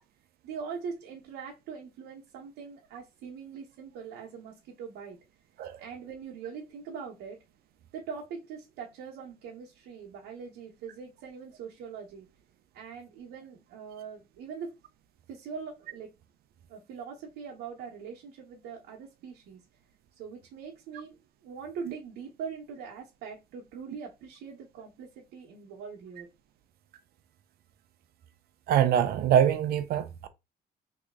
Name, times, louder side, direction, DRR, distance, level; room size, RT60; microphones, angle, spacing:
voice 1, 0.4-5.2 5.8-7.4 7.9-12.3 12.7-14.7 15.3-16.1 16.7-19.6 20.1-21.2 21.4-26.3, right 6 dB, 80° right, 1.0 m, -42 dB
voice 2, 28.7-30.3, right 9 dB, 65° right, 0.6 m, -24 dB
3.1 x 3.0 x 3.6 m
cardioid pair, 110°, 17 cm